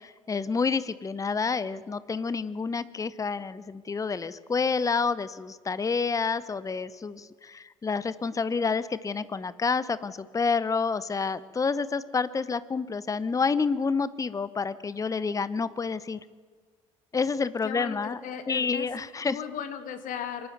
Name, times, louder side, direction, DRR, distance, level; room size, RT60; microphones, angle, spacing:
voice 1, 0.0-16.2 17.1-18.2 18.5-19.4, left 5 dB, 20° left, 17 dB, 0.8 m, -29 dB
voice 2, 17.6-18.9 19.2-20.5, left 8 dB, 50° left, 9 dB, 2.1 m, -36 dB
24.5 x 12.0 x 9.3 m, 1.5 s
figure-of-eight pair, 55°, 17 cm